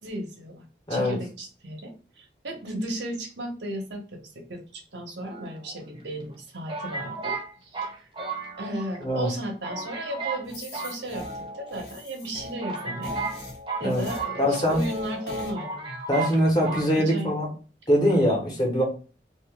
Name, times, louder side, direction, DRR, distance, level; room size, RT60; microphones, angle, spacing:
voice 1, 0.0-8.1 8.6-13.1 13.8-17.3, right 1 dB, 85° right, 2 dB, 1.1 m, -35 dB
sound 1, 5.2-6.0 6.7-9.0 9.3-9.4 9.6-10.4 10.7-11.7 12.2-12.3 12.6-14.9 15.2-15.3 15.5-16.4 16.6-16.9, right 4 dB, 30° right, 0.9 m, -34 dB
sound 2, 10.4-15.5, left 2 dB, 70° left, 1.0 m, -39 dB
voice 2, 14.4-14.8 16.1-17.5 17.9-18.8, equal, 25° left, -1 dB, 1.2 m, -22 dB
2.9 x 2.6 x 3.5 m, 0.36 s
head